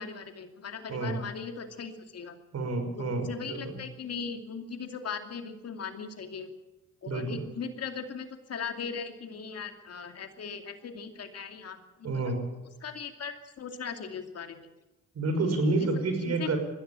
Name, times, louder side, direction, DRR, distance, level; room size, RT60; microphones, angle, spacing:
voice 1, 0.0-2.4 3.0-6.5 7.0-12.3 12.8-14.7 15.8-15.9 16.3-16.5, left 6 dB, 55° left, 6 dB, 2.6 m, -39 dB
voice 2, 2.5-3.8 7.1-7.4 12.0-12.4 15.1-16.6, right 2 dB, 55° right, 6 dB, 6.2 m, -29 dB
20.5 x 15.5 x 9.0 m, 1.1 s
cardioid pair, 90°, 30 cm